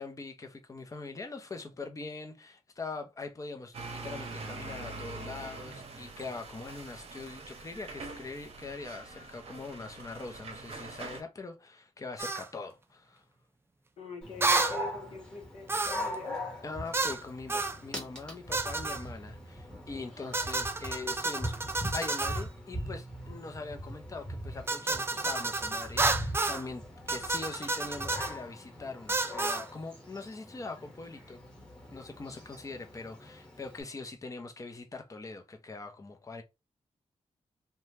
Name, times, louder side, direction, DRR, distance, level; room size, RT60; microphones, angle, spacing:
voice 1, 0.0-13.2 16.6-21.5 21.9-31.4 31.9-36.4, left 3 dB, 25° left, 0.6 m, -42 dB
sound 1, 3.7-11.2, right 3 dB, 55° right, 0.8 m, -44 dB
sound 2, 12.2-12.5 14.4-14.8 15.7-16.1 16.9-17.2 17.5-17.8 18.5-19.0 20.3-22.4 24.7-26.6 27.1-28.3 29.1-29.6, right 3 dB, 20° right, 0.4 m, -30 dB
voice 2, 14.0-16.4, left 4 dB, 55° left, 0.9 m, -43 dB
Dog, 14.2-33.8, equal, 10° left, 1.0 m, -41 dB
2.7 x 2.2 x 3.2 m
wide cardioid pair, 115°, 12 cm